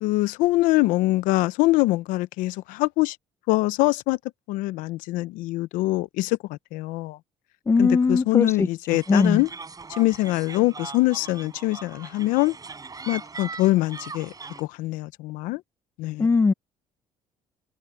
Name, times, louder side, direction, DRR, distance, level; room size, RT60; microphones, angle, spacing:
voice 1, 0.0-3.2 3.5-4.2 4.5-7.2 7.8-9.5 9.9-12.6 13.1-14.3 14.6-15.6 16.0-16.3, left 19 dB, 90° left, 0.7 m, -24 dB
voice 2, 7.7-8.7 9.1-9.4 16.2-16.5, left 4 dB, 20° left, 0.6 m, -20 dB
sound 1, 8.9-14.6, right 4 dB, 25° right, 6.9 m, -40 dB
cardioid pair, 95°, 13 cm